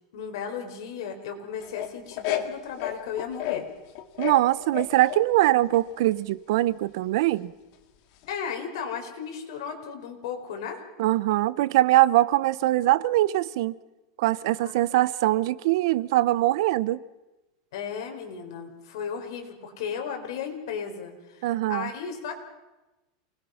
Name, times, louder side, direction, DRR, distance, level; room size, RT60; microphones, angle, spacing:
voice 1, 0.1-3.6 8.3-10.8 14.6-14.7 17.7-22.3, left 7 dB, 70° left, 4.8 m, -35 dB
sound 1, 1.6-3.7 3.9-5.2 5.7-6.2 8.2-8.3, left 13 dB, 50° left, 2.0 m, -31 dB
voice 2, 4.2-7.5 11.0-13.7 14.2-17.0 21.4-21.9, right 15 dB, 65° right, 0.7 m, -22 dB
28.5 x 20.5 x 5.9 m
supercardioid pair, 165°, 3 cm